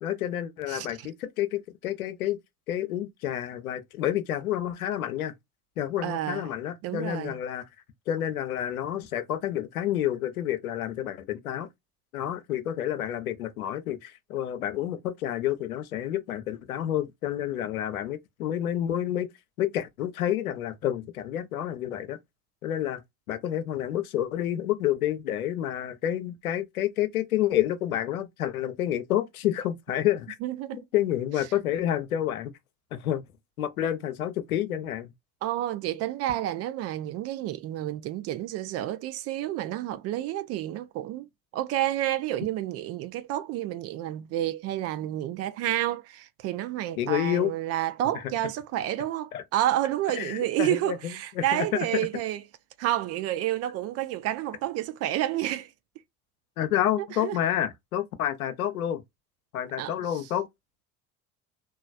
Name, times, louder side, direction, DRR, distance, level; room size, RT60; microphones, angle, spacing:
voice 1, 0.0-2.4 2.7-5.3 5.8-7.6 8.1-11.7 12.1-19.3 19.6-22.2 22.6-23.0 23.3-30.4 30.7-32.5 32.9-33.2 33.6-35.1 47.0-47.5 48.1-48.2 49.3-49.4 50.1-51.7 56.6-59.0 59.5-60.5, left 11 dB, 75° left, 0.6 m, -29 dB
voice 2, 0.7-1.1 6.0-6.5 6.8-7.4 30.4-30.8 35.4-52.4 52.8-55.7 57.2-57.4 59.8-59.9, right 13 dB, 35° right, 0.4 m, -30 dB
3.0 x 2.3 x 2.4 m
figure-of-eight pair, 60°, 43 cm